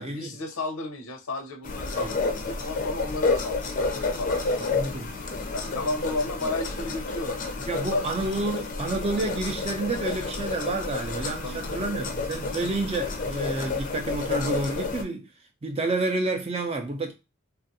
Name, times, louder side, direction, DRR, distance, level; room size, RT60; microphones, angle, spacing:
voice 1, 0.0-4.4 5.5-8.1 11.4-11.9, left 2 dB, 80° left, 0.7 m, -33 dB
sound 1, 1.6-15.0, left 3 dB, 40° left, 0.5 m, -30 dB
voice 2, 4.7-5.2 7.7-15.3 15.6-17.1, right 2 dB, 30° right, 0.4 m, -29 dB
3.3 x 2.4 x 2.6 m
head